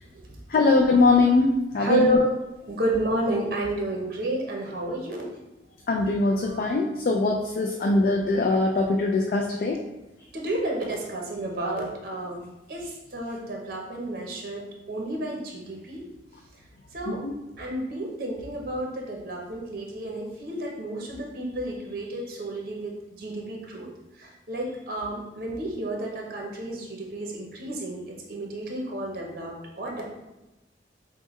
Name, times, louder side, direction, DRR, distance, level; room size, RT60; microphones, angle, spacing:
voice 1, 0.5-2.0 5.9-9.8 17.1-17.3, left 3 dB, 50° left, 1 dB, 0.3 m, -22 dB
voice 2, 1.8-2.3 2.7-5.3 10.3-12.4 12.7-16.0 16.9-17.2 17.5-23.9 24.2-30.0, right 1 dB, 55° right, -1 dB, 0.8 m, -30 dB
5.4 x 2.1 x 3.1 m, 0.99 s
head